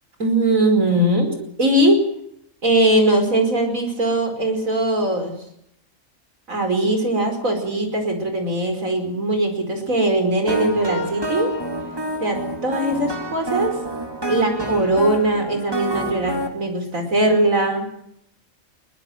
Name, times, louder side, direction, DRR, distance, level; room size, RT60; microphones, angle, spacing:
voice 1, 0.2-2.0 2.6-5.4 6.5-11.5 12.2-13.8 14.3-17.9, right 1 dB, 85° right, 6 dB, 5.4 m, -20 dB
sound 1, 10.5-16.5, right 1 dB, 15° right, 3.3 m, -28 dB
22.5 x 20.5 x 7.8 m, 0.75 s
omnidirectional pair, 1.4 m